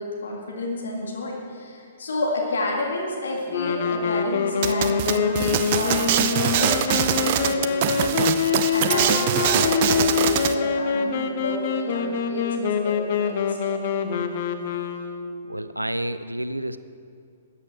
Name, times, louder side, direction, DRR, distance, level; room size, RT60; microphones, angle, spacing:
voice 1, 0.0-14.1, left 2 dB, 60° left, -1 dB, 2.1 m, -30 dB
sound 1, 3.5-15.4, left 6 dB, 45° left, 0.8 m, -25 dB
sound 2, 4.6-10.5, right 10 dB, 40° right, 0.6 m, -23 dB
voice 2, 15.5-16.8, right 1 dB, 85° right, 13 dB, 0.5 m, -29 dB
13.5 x 8.3 x 5.9 m, 2.4 s
figure-of-eight pair, 115°, 0 cm